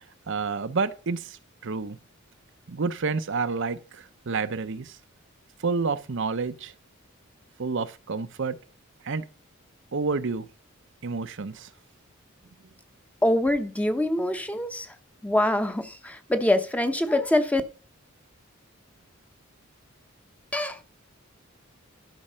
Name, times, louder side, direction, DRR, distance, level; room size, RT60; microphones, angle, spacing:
voice 1, 0.3-2.0 2.7-5.0 5.6-6.7 7.6-8.6 9.0-9.3 9.9-10.5 11.0-11.7, right 4 dB, 65° right, 0.7 m, -29 dB
voice 2, 13.2-15.0 15.2-17.6 20.5-20.8, left 1 dB, 5° left, 0.8 m, -24 dB
12.0 x 6.0 x 5.6 m
head